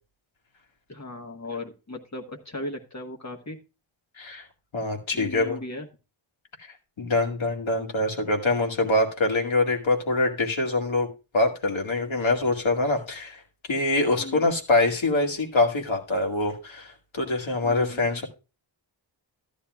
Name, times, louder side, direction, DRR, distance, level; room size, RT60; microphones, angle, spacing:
voice 1, 0.9-3.6 5.1-5.9 14.2-14.5 17.6-18.1, left 1 dB, 35° left, 1 dB, 1.3 m, -37 dB
voice 2, 4.2-4.5 4.7-5.6 7.0-11.1 11.3-13.4 13.7-18.3, left 2 dB, 75° left, 1 dB, 2.1 m, -24 dB
14.0 x 10.0 x 2.3 m, 0.31 s
wide cardioid pair, 105°, 48 cm